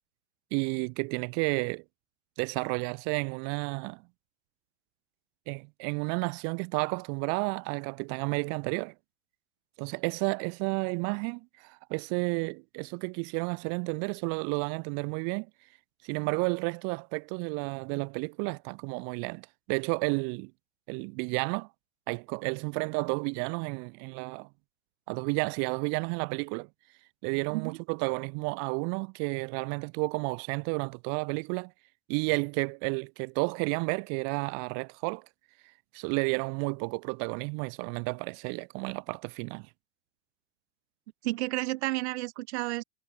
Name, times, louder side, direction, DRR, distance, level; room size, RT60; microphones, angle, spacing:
voice 1, 0.5-1.8 2.4-4.0 5.5-8.9 9.8-15.5 16.0-20.5 20.9-21.7 22.1-24.5 25.1-26.7 27.2-31.7 32.1-35.2 35.9-39.7, right 40 dB or more, 45° right, 2.6 m, -31 dB
voice 2, 41.2-42.8, right 19 dB, 65° right, 2.3 m, -31 dB
supercardioid pair, 155°, 36 cm